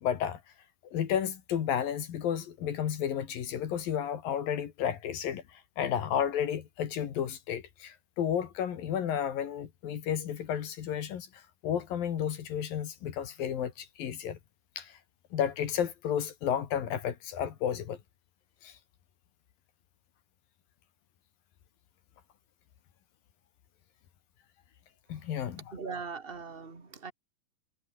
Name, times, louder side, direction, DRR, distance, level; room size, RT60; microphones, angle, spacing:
voice 1, 0.0-0.4 0.9-14.4 14.8-15.0 15.3-18.0 18.6-18.8 25.1-25.6, left 9 dB, 75° left, 3.9 m, -32 dB
voice 2, 25.7-27.1, right 5 dB, 20° right, 2.1 m, -40 dB
omnidirectional pair, 4.1 m